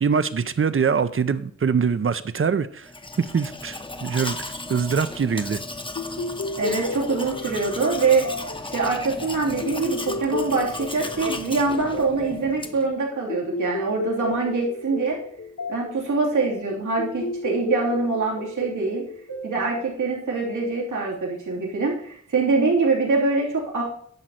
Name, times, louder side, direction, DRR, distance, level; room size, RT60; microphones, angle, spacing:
voice 1, 0.0-2.9 3.2-4.4 4.7-5.6, right 6 dB, 45° right, 14 dB, 0.7 m, -23 dB
Domestic sounds home sounds, 2.8-12.9, left 2 dB, 15° left, 0.9 m, -35 dB
sound 1, 6.0-20.7, left 3 dB, 60° left, 1.6 m, -33 dB
voice 2, 6.6-8.2 8.6-15.2 15.7-19.0 19.4-23.8, right 4 dB, 90° right, -3 dB, 3.0 m, -24 dB
11.0 x 4.1 x 7.7 m, 0.62 s
wide cardioid pair, 70°, 30 cm